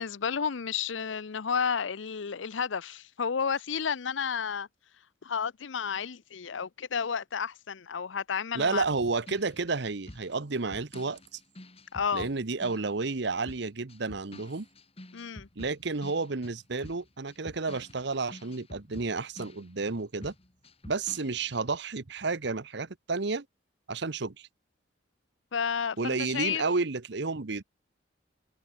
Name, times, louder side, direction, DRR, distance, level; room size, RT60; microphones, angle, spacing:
voice 1, 0.0-4.7 5.2-8.8 11.9-12.3 15.1-15.5 25.5-26.6, left 6 dB, 85° left, 0.7 m, -31 dB
voice 2, 8.5-11.2 12.1-14.7 15.6-20.3 20.8-23.4 23.9-24.5 26.0-27.6, right 3 dB, 65° right, 1.0 m, -31 dB
sound 1, 8.9-13.2 13.5-20.0 20.2-21.6, left 1 dB, 30° left, 3.0 m, -49 dB
head